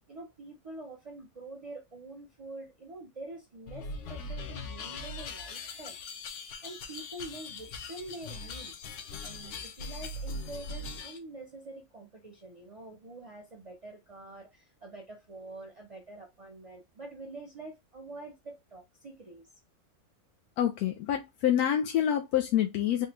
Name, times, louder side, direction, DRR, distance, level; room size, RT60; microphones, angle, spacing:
voice 1, 0.1-6.0 6.6-8.7 9.2-19.5, right 2 dB, 45° right, 0.4 m, -46 dB
sound 1, 3.7-11.2, left 3 dB, 65° left, 0.8 m, -40 dB
voice 2, 20.6-23.1, left 10 dB, 90° left, 1.1 m, -27 dB
3.6 x 2.2 x 2.9 m
omnidirectional pair, 1.5 m